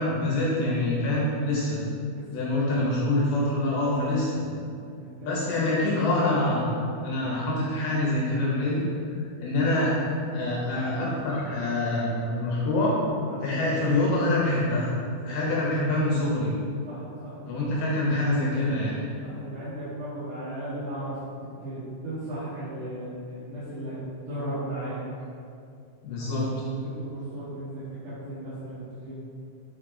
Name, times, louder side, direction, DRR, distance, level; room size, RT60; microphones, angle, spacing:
voice 1, 0.0-1.8 2.3-4.5 5.2-6.7 7.0-8.8 9.4-12.9 13.4-14.9 15.2-16.5 17.5-19.1 26.0-26.5, left 1 dB, 70° left, -5 dB, 2.7 m, -25 dB
voice 2, 2.1-2.4 4.5-5.7 13.2-13.6 15.2-15.8 16.8-17.8 19.2-21.1 21.4-25.0 26.2-29.3, right 1 dB, 55° right, -13 dB, 2.1 m, -37 dB
6.9 x 6.6 x 3.8 m, 2.4 s
omnidirectional pair, 5.3 m